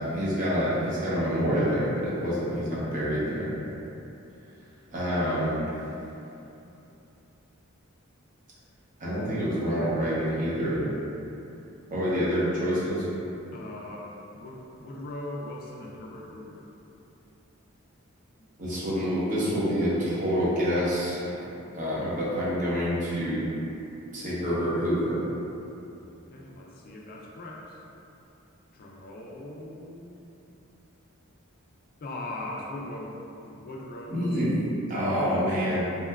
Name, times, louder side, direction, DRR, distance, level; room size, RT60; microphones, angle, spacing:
voice 1, 0.0-3.5 4.9-5.6 9.0-10.8 11.9-13.1 18.6-21.4 21.7-23.5 24.1-25.2 34.1-34.5 34.9-35.8, equal, 35° right, -9 dB, 0.7 m, -27 dB
voice 2, 13.5-16.8 18.4-18.5 26.0-27.8 28.7-30.4 32.0-33.2 33.4-34.7 35.2-36.0, left 1 dB, 45° left, -2 dB, 0.3 m, -40 dB
2.8 x 2.2 x 2.2 m, 2.8 s
head